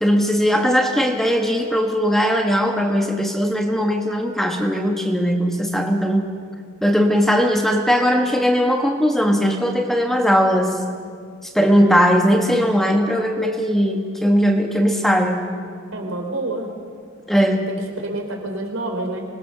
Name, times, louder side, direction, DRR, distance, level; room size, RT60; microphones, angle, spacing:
voice 1, 0.0-6.3 6.8-10.8 11.5-15.4 17.3-17.6, equal, ahead, 3 dB, 1.4 m, -19 dB
voice 2, 15.9-16.7 17.4-19.3, right 2 dB, 75° right, 3 dB, 3.9 m, -28 dB
26.0 x 20.0 x 6.7 m, 2.1 s
head